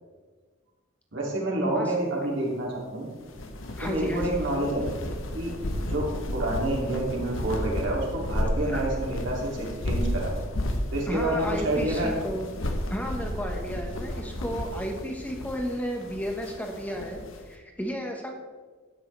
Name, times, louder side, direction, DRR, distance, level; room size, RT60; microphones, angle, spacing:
voice 1, 1.1-3.1 3.8-4.8 5.3-10.3 10.9-12.1, right 1 dB, 60° right, -3 dB, 3.0 m, -28 dB
voice 2, 1.6-1.9 3.7-4.4 8.6-8.9 11.1-12.5 12.9-17.2 17.4-18.4, equal, 5° left, 1 dB, 1.4 m, -33 dB
sound 1, 3.2-17.4, left 1 dB, 65° left, 1.2 m, -32 dB
12.5 x 9.4 x 3.4 m, 1.4 s
head